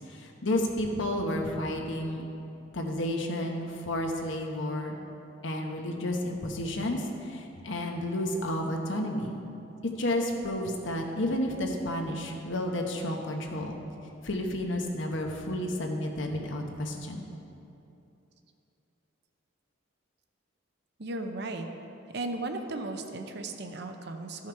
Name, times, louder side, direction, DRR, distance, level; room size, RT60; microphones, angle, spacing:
voice 1, 0.0-2.2 2.7-5.0 5.4-9.4 10.0-13.8 14.2-17.2, left 1 dB, 65° left, 2 dB, 1.0 m, -31 dB
voice 2, 21.0-21.7 22.1-24.5, right 2 dB, 55° right, 5 dB, 0.7 m, -36 dB
13.0 x 5.7 x 4.6 m, 2.8 s
head